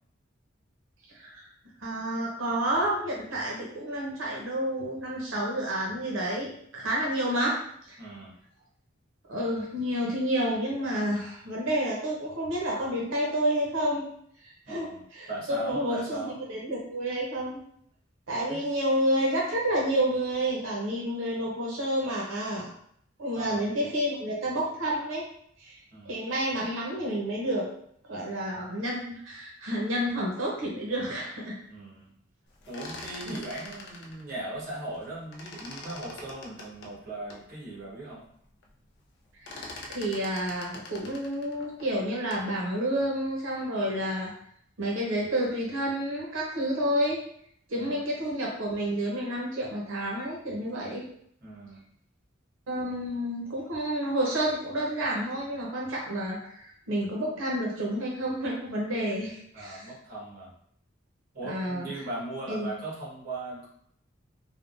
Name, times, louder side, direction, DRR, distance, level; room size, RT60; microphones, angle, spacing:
voice 1, 1.1-1.5 1.8-7.6 7.9-8.0 9.3-14.1 14.7-14.9 15.1-17.6 18.3-22.7 23.2-25.2 25.6-25.8 26.1-27.7 28.1-31.6 33.3-33.4 39.4-44.3 44.8-47.2 47.7-51.0 52.7-59.9 61.4-61.9 62.5-62.7, right 1 dB, 80° right, -3 dB, 0.7 m, -29 dB
voice 2, 8.0-8.4 14.7-16.4 18.5-18.6 23.3-23.7 25.9-26.2 31.7-32.1 32.7-38.2 47.7-48.0 51.4-51.8 59.5-60.5 61.3-63.7, right 2 dB, 50° right, -5 dB, 1.2 m, -39 dB
sound 1, 32.5-35.1 35.3-37.5 38.0-38.1 38.3-38.7 39.0-42.5, left 2 dB, 60° left, 0.5 m, -44 dB
3.4 x 2.1 x 2.5 m, 0.66 s
head